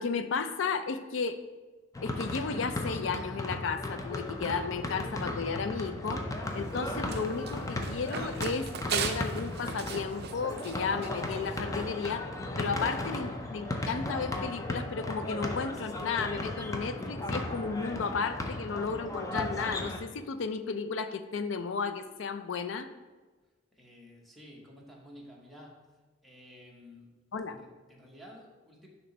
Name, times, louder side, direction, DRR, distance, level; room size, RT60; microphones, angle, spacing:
voice 1, 0.0-1.4 2.0-6.2 6.5-12.3 12.6-22.9 27.3-27.6, left 5 dB, 75° left, 10 dB, 0.4 m, -33 dB
sound 1, 1.9-20.0, left 1 dB, 20° left, 0.5 m, -36 dB
Run, 6.4-11.6, right 7 dB, 55° right, 0.4 m, -39 dB
voice 2, 23.7-26.0 26.2-27.1 27.5-28.9, equal, ahead, -3 dB, 1.0 m, -52 dB
6.6 x 3.0 x 5.2 m, 1.2 s
head